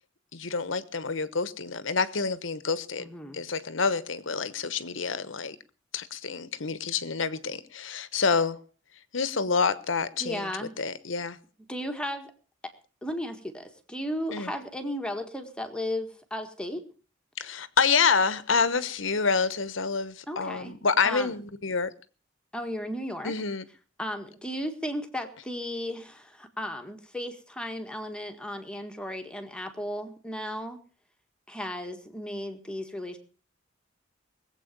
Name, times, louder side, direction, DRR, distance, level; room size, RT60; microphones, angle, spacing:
voice 1, 0.3-3.1 3.3-5.6 5.9-8.6 9.1-10.5 10.8-11.4 14.3-14.5 17.4-21.9 23.2-23.6, left 5 dB, 75° left, 1.1 m, -27 dB
voice 2, 3.0-3.4 10.2-10.7 11.7-12.3 12.6-12.7 13.0-16.8 20.3-20.7 21.0-21.3 22.5-23.3 24.0-30.8 31.5-33.2, equal, 5° left, 1.8 m, -35 dB
20.0 x 8.2 x 6.7 m
head